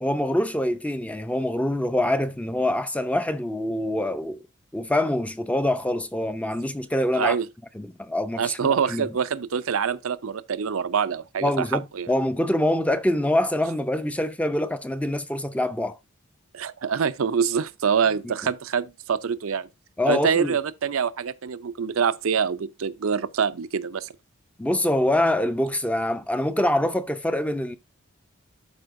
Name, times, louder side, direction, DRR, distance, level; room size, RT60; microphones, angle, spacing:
voice 1, 0.0-4.4 4.7-7.4 7.8-8.6 8.9-9.1 11.4-11.8 12.1-16.0 20.0-20.6 24.6-27.8, left 1 dB, 5° left, 0.5 m, -25 dB
voice 2, 7.1-7.5 8.4-12.1 16.5-19.7 20.1-24.1, right 6 dB, 70° right, 0.5 m, -25 dB
12.5 x 4.3 x 2.6 m
head